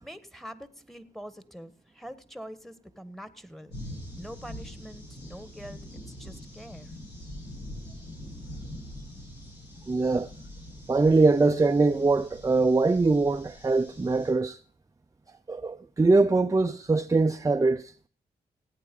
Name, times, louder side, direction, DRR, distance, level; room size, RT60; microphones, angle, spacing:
voice 1, 0.0-3.7 4.1-5.8 6.2-6.9, equal, ahead, 1.4 m, -44 dB
sound 1, 3.7-14.3, left 1 dB, 80° left, 7.2 m, -43 dB
voice 2, 9.9-10.3 10.9-14.6 15.5-17.9, right 3 dB, 20° right, 0.6 m, -22 dB
17.5 x 8.5 x 5.3 m
supercardioid pair, 50°, 17 cm